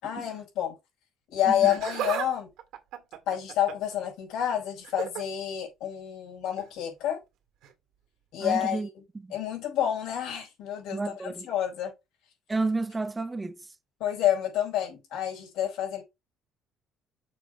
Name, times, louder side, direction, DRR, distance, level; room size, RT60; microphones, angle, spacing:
voice 1, 0.0-0.7 1.3-2.5 3.3-7.2 8.3-8.8 9.3-11.9 14.0-16.0, left 10 dB, 80° left, 4.5 m, -29 dB
Laughter, 1.5-2.3 2.6-3.9 4.8-5.2 6.5-6.7 7.6-7.7, right 10 dB, 75° right, 1.8 m, -35 dB
voice 2, 8.4-8.9 9.1-9.3 10.9-11.5 12.5-13.6, right 3 dB, 15° right, 0.6 m, -31 dB
6.7 x 4.2 x 4.7 m
cardioid pair, 160°, 0 cm